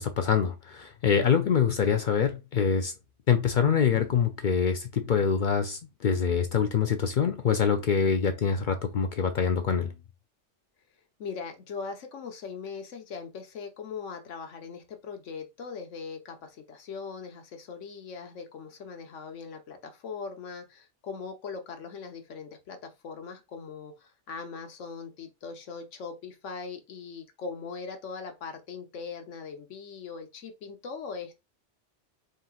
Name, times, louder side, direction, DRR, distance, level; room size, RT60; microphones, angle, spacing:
voice 1, 0.0-2.9 3.3-9.9, left 6 dB, 60° left, 0.5 m, -25 dB
voice 2, 11.2-31.4, left 5 dB, 85° left, 1.3 m, -40 dB
4.3 x 3.8 x 2.3 m
omnidirectional pair, 1.2 m